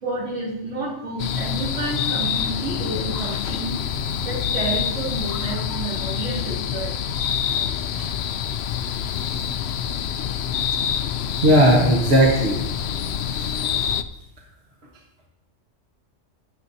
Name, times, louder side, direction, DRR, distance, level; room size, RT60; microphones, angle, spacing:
voice 1, 0.0-3.8 4.2-7.0, right 2 dB, 75° right, -5 dB, 3.0 m, -30 dB
sound 1, 1.2-14.0, left 8 dB, 65° left, 0.7 m, -26 dB
voice 2, 11.4-12.6 13.3-13.5, right 1 dB, 55° right, -3 dB, 1.6 m, -16 dB
17.0 x 7.3 x 2.8 m, 0.87 s
omnidirectional pair, 1.3 m